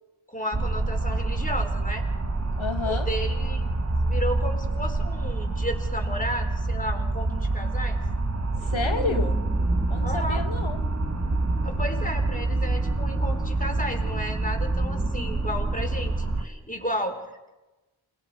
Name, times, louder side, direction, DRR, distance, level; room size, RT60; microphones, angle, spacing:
voice 1, 0.3-2.0 2.8-3.7 4.0-8.0 10.0-10.4 11.6-17.2, equal, 15° left, 3 dB, 4.6 m, -33 dB
sound 1, 0.5-16.4, right 2 dB, 35° right, 1.3 m, -27 dB
voice 2, 2.6-3.1 8.6-9.4 9.9-10.8, left 4 dB, 75° left, 5 dB, 1.5 m, -30 dB
sound 2, 8.6-16.8, equal, 5° right, 2.3 m, -38 dB
28.5 x 21.0 x 5.0 m, 1.1 s
wide cardioid pair, 45°, 48 cm